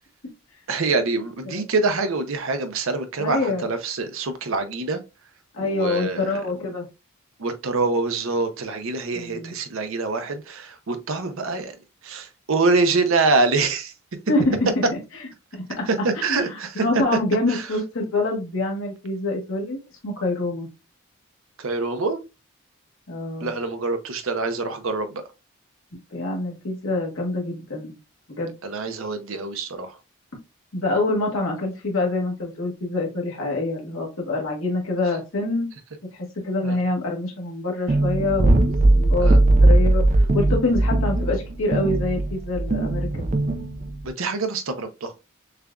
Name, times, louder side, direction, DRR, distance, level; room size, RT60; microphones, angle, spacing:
voice 1, 0.7-5.0 5.6-6.4 7.4-11.7 12.0-13.9 15.9-16.8 17.5-17.7 21.6-22.2 23.4-25.2 28.6-30.0 36.6-36.8 39.2-39.4 44.0-45.2, right 3 dB, 70° right, 0.6 m, -25 dB
voice 2, 3.2-3.7 5.5-6.8 9.1-9.5 14.3-14.7 15.5-15.9 16.3-16.4 16.8-20.7 23.1-23.5 26.1-27.9 28.3-28.5 30.7-35.7 36.1-38.6 38.9-39.4 39.6-40.0 40.3-43.3, left 2 dB, 70° left, 1.4 m, -26 dB
sound 1, 37.9-44.1, right 2 dB, 35° right, 0.4 m, -19 dB
6.6 x 2.4 x 2.3 m
head